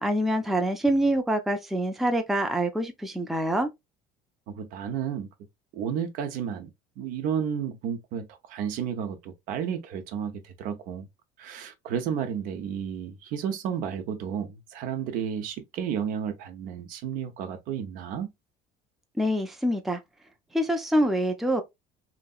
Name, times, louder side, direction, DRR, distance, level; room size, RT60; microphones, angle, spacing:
voice 1, 0.0-3.7 19.2-20.0 20.5-21.6, right 1 dB, ahead, 0.5 m, -25 dB
voice 2, 4.5-5.3 5.7-6.7 7.0-11.1 11.4-18.3, right 8 dB, 65° right, 0.7 m, -32 dB
3.0 x 2.7 x 2.3 m
supercardioid pair, 110°, 15 cm